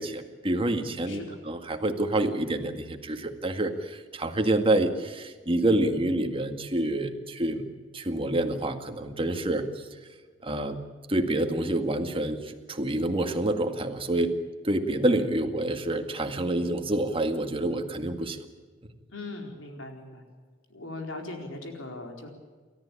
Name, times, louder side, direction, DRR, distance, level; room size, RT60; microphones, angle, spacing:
voice 1, 0.0-9.7 10.4-10.8 11.1-14.3 14.6-18.5, right 1 dB, 30° right, 6 dB, 2.0 m, -27 dB
voice 2, 1.1-1.4 19.1-20.2 20.7-22.3, left 2 dB, 80° left, 3 dB, 4.4 m, -39 dB
29.0 x 14.0 x 8.6 m, 1.5 s
head